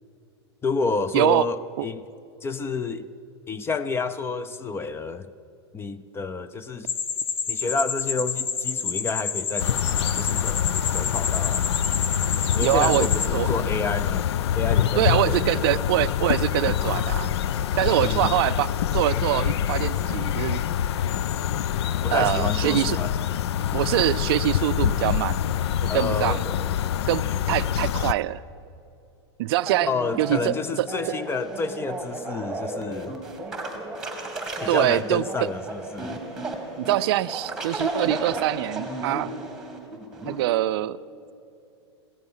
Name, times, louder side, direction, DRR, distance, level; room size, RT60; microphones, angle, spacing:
voice 1, 0.6-2.1 2.4-3.1 3.5-5.3 5.7-6.9 7.5-9.9 10.1-10.6 10.9-11.7 12.5-14.3 14.6-15.8 18.0-18.3 22.0-23.1 25.9-26.6 29.8-33.2 34.6-36.2, left 4 dB, 15° left, 15 dB, 0.6 m, -29 dB
voice 2, 1.1-1.5 1.8-1.9 12.6-13.5 15.0-17.3 17.8-20.6 22.1-23.0 23.7-25.4 25.9-26.5 27.1-28.4 29.4-29.9 30.2-30.9 34.7-35.5 36.8-39.3 40.2-41.0, right 15 dB, 60° right, 15 dB, 0.5 m, -24 dB
sound 1, 6.9-13.3, left 6 dB, 40° left, 1.2 m, -29 dB
sound 2, 9.6-28.1, left 10 dB, 75° left, 0.5 m, -25 dB
sound 3, 29.7-40.5, right 2 dB, 5° right, 2.4 m, -33 dB
16.5 x 14.5 x 5.6 m, 2.7 s
hypercardioid pair, 120°, 14 cm